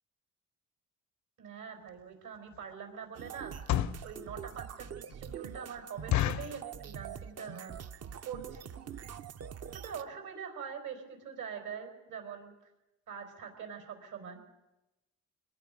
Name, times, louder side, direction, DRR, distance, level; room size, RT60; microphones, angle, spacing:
voice 1, 1.4-3.5 4.0-7.8 8.2-8.7 9.8-12.5 13.1-14.4, right 7 dB, 75° right, 4 dB, 5.0 m, -43 dB
sound 1, 1.9-2.0 2.5-2.7 3.4-4.1 4.6-4.7 5.1-5.2 5.5-5.6 6.1-6.6 7.2-7.5 7.8-7.9 8.1-8.3 8.9-9.0 9.2-9.4 9.7-9.8 10.0-10.1, left 12 dB, 70° left, 0.7 m, -31 dB
sound 2, 3.1-10.0, right 8 dB, 55° right, 0.9 m, -44 dB
25.5 x 20.0 x 5.4 m, 0.98 s
cardioid pair, 90°, 30 cm